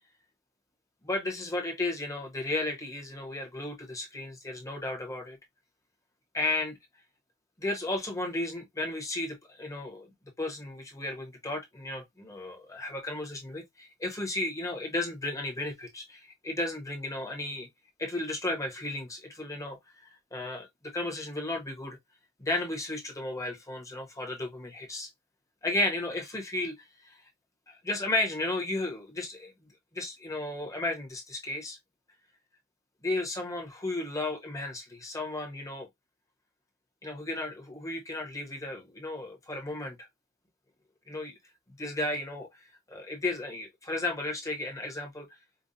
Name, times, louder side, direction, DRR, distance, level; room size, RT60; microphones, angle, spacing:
voice 1, 1.0-5.4 6.3-6.8 7.6-10.1 10.4-17.7 18.0-22.0 22.4-25.1 25.6-27.2 27.7-29.5 29.9-31.8 33.0-35.9 37.0-40.0 41.1-41.4 41.8-42.5 42.9-45.3, left 2 dB, 15° left, 1.0 m, -34 dB
5.1 x 2.2 x 2.7 m
head